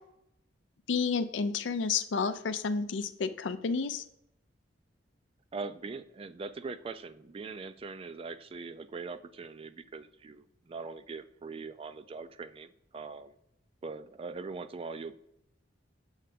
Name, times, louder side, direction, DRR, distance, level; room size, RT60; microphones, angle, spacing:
voice 1, 0.9-4.0, left 5 dB, 90° left, 11 dB, 0.5 m, -30 dB
voice 2, 5.5-13.4 13.8-15.1, right 4 dB, 30° right, 12 dB, 0.3 m, -41 dB
7.2 x 3.3 x 5.0 m, 0.78 s
head